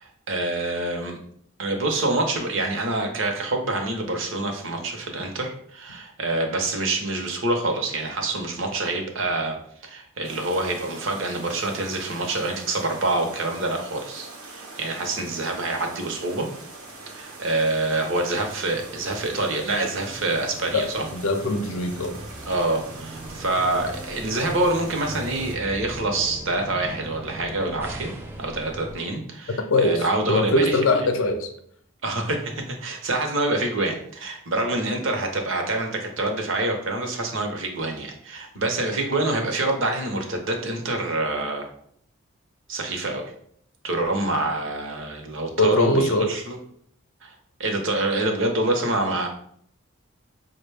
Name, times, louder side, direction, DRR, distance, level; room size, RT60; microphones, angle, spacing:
voice 1, 0.0-1.2 1.6-9.5 9.8-16.5 17.1-21.0 22.5-28.1 28.4-30.8 32.0-41.7 42.7-43.2 43.8-46.6 47.2-47.3 47.6-49.3, right 2 dB, 60° right, 0.7 m, -26 dB
sound 1, 10.2-25.6, right 3 dB, 85° right, 0.9 m, -42 dB
sound 2, 16.8-29.0, right 1 dB, 10° right, 0.3 m, -40 dB
voice 2, 20.7-22.2 29.6-31.5 45.6-46.3, left 2 dB, 65° left, 0.5 m, -22 dB
4.9 x 2.2 x 3.3 m
head